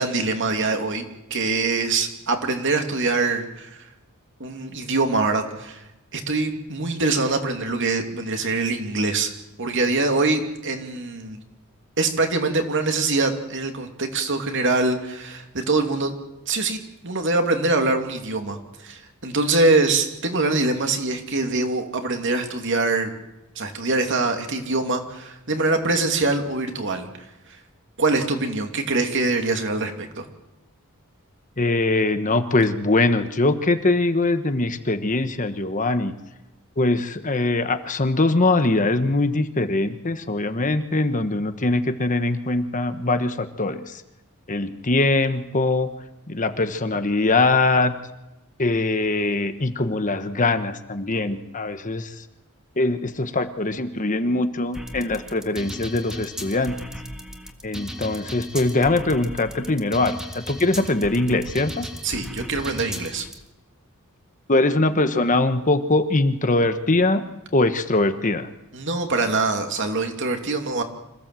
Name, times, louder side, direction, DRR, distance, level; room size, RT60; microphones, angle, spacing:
voice 1, 0.0-3.9 4.4-5.8 6.1-9.3 9.6-11.4 12.0-16.2 16.5-23.1 23.6-27.6 28.0-30.3 62.0-63.3 68.7-70.8, right 3 dB, 55° right, 5 dB, 2.7 m, -24 dB
voice 2, 31.6-36.1 36.8-44.0 44.5-45.9 46.3-47.9 48.6-52.2 52.8-56.8 57.6-61.9 64.5-67.3 67.5-68.5, left 2 dB, 35° left, 9 dB, 1.2 m, -22 dB
sound 1, 54.7-63.3, equal, 5° right, 1.7 m, -36 dB
26.0 x 16.0 x 7.6 m, 0.97 s
head